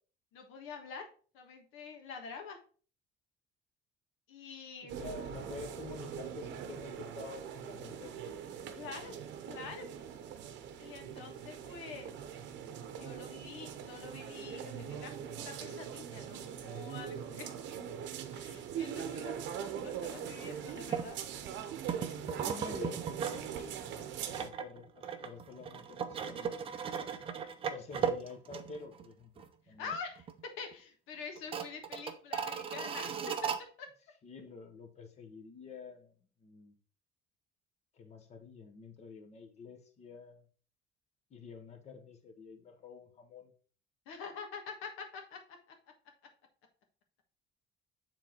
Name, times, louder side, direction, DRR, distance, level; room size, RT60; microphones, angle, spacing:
voice 1, 0.3-1.1 1.3-2.6 4.3-5.1 8.7-9.2 9.4-9.9 10.8-12.1 12.9-17.5 18.3-21.2 27.0-27.2 29.8-30.3 30.6-33.1 33.8-33.9 44.0-45.4, left 5 dB, 85° left, 4 dB, 1.5 m, -46 dB
voice 2, 4.8-8.4 22.1-26.6 27.7-29.9 34.2-36.1 36.4-36.7 37.9-40.5 41.3-43.5, left 5 dB, 30° left, 6 dB, 1.0 m, -49 dB
sound 1, 4.9-24.5, right 8 dB, 60° right, 0.8 m, -42 dB
sound 2, 20.9-21.1 21.9-23.5 23.8-29.1 29.4-29.5 29.9-30.4 30.7-30.8 31.4-33.6, right 7 dB, 25° right, 0.5 m, -37 dB
7.3 x 3.8 x 4.4 m, 0.40 s
cardioid pair, 180°, 21 cm